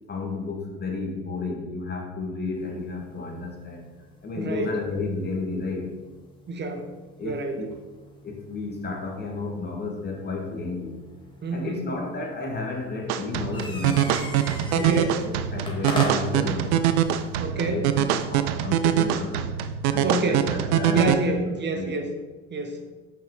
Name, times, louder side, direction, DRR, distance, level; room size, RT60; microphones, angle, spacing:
voice 1, 0.1-3.8 4.2-5.9 7.2-7.7 8.2-11.0 11.5-16.9 17.5-19.5 19.9-21.4 21.7-21.9, left 3 dB, 30° left, 0 dB, 1.7 m, -32 dB
sound 1, 2.5-17.4, left 1 dB, 15° left, 1.7 m, -41 dB
voice 2, 4.4-4.8 6.5-6.9 7.2-7.6 11.4-11.9 14.7-15.2 17.4-17.9 20.0-20.5 20.9-22.1 22.5-22.8, right 2 dB, 35° right, 5 dB, 1.0 m, -27 dB
sound 2, 13.1-21.1, right 10 dB, 75° right, 0.5 m, -24 dB
5.7 x 5.4 x 3.7 m, 1.2 s
hypercardioid pair, 75°, 33 cm